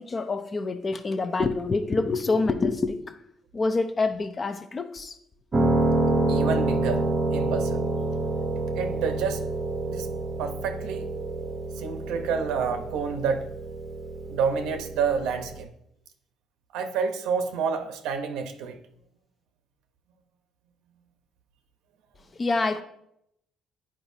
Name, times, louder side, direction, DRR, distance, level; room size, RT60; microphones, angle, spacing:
voice 1, 0.0-3.2 3.5-5.2 22.3-22.8, left 3 dB, 25° left, 0.5 m, -26 dB
Piano, 5.5-15.6, right 2 dB, 25° right, 0.7 m, -28 dB
voice 2, 6.3-7.1 7.3-7.9 8.7-9.4 9.9-10.1 10.4-11.1 11.7-13.5 14.3-15.7 16.7-18.8, right 6 dB, 90° right, 0.9 m, -28 dB
10.0 x 4.8 x 2.7 m
cardioid pair, 140°, 0 cm